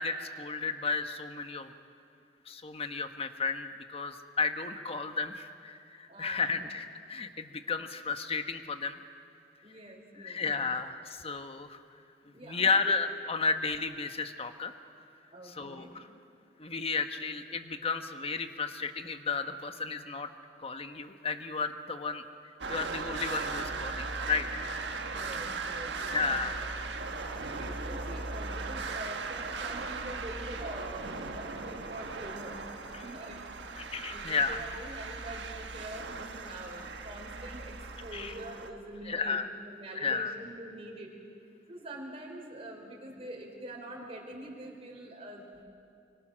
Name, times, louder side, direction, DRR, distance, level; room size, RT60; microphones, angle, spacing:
voice 1, 0.0-1.7 2.5-9.0 10.2-11.8 12.4-14.7 15.4-16.1 16.6-20.3 20.6-22.2 22.7-24.6 26.1-26.6 32.9-33.0 33.8-34.6 38.1-38.3 39.1-39.5 39.9-40.3, left 4 dB, 35° left, 8 dB, 1.2 m, -33 dB
voice 2, 6.1-6.7 9.6-10.7 12.3-12.9 15.3-15.9 25.1-26.5 27.4-32.6 33.0-33.4 33.8-37.7 38.0-39.4 39.6-41.1 41.7-45.6, right 1 dB, 35° right, -1 dB, 4.0 m, -45 dB
sound 1, 22.6-38.7, right 3 dB, 85° right, 1.5 m, -38 dB
25.0 x 24.0 x 6.3 m, 2.4 s
head